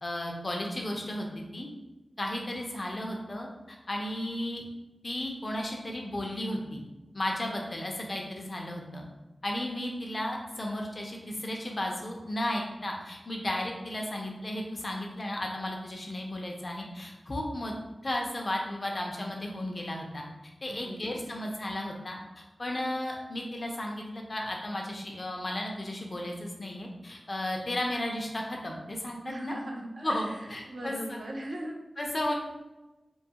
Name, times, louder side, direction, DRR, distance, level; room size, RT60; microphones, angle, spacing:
voice 1, 0.0-1.7 2.2-4.6 5.0-6.8 7.1-9.0 9.4-17.7 18.0-20.2 20.6-22.2 22.6-29.6 30.0-31.2 32.0-32.3, left 1 dB, 40° left, 0 dB, 0.5 m, -34 dB
voice 2, 20.6-21.3 29.2-30.4 30.7-31.8, right 1 dB, 60° right, 1 dB, 0.4 m, -39 dB
2.6 x 2.3 x 2.8 m, 1.1 s
wide cardioid pair, 90°, 0 cm